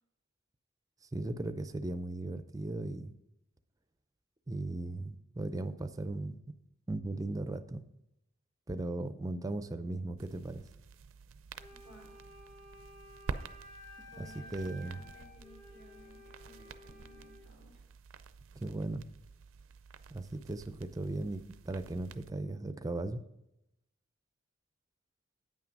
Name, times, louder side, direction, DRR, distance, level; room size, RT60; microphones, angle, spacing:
voice 1, 1.1-3.1 4.5-6.4 6.9-7.8 8.7-10.6 14.2-14.3 14.5-15.0 18.6-19.0 20.1-23.2, right 2 dB, 15° right, 11 dB, 0.5 m, -37 dB
sound 1, 10.2-22.3, right 4 dB, 75° right, 0.5 m, -49 dB
Wind instrument woodwind instrument, 11.6-17.5, left 1 dB, 35° left, 2.3 m, -54 dB
voice 2, 11.7-12.2 14.0-17.9, equal, 55° left, -3 dB, 3.3 m, -58 dB
9.4 x 5.9 x 5.2 m, 0.86 s
head